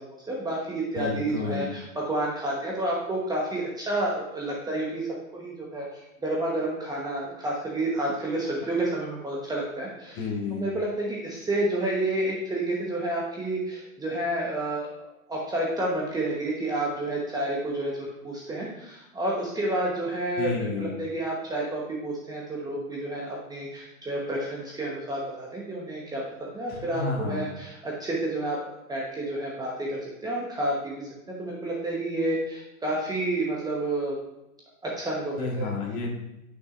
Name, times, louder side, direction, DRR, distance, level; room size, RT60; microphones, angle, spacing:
voice 1, 0.0-5.1 5.3-10.2 10.5-14.9 15.3-17.9 18.2-26.2 26.5-28.6 28.9-31.0 31.3-34.2 34.8-35.7, right 1 dB, 10° right, -4 dB, 1.2 m, -30 dB
voice 2, 0.9-1.7 10.1-10.6 20.4-20.9 26.7-27.5 35.4-36.1, left 4 dB, 30° left, -1 dB, 1.9 m, -30 dB
9.0 x 6.2 x 2.6 m, 0.89 s
hypercardioid pair, 125°, 42 cm